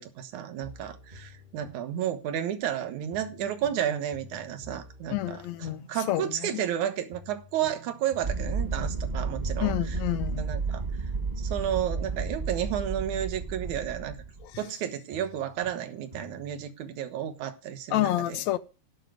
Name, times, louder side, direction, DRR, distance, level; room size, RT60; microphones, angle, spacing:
voice 1, 0.0-5.4 5.9-9.7 10.4-10.8 11.4-14.2 14.6-18.4, right 10 dB, 75° right, 2.7 m, -32 dB
sound 1, 0.6-2.8 3.1-6.8 7.1-10.8 11.1-14.8 15.1-16.7, right 1 dB, 30° right, 0.9 m, -50 dB
voice 2, 5.1-6.6 9.6-10.5 14.4-14.6 17.9-18.6, left 15 dB, 75° left, 1.8 m, -29 dB
sound 2, 8.2-14.5, right 4 dB, 55° right, 0.4 m, -32 dB
12.0 x 7.6 x 5.1 m
omnidirectional pair, 3.5 m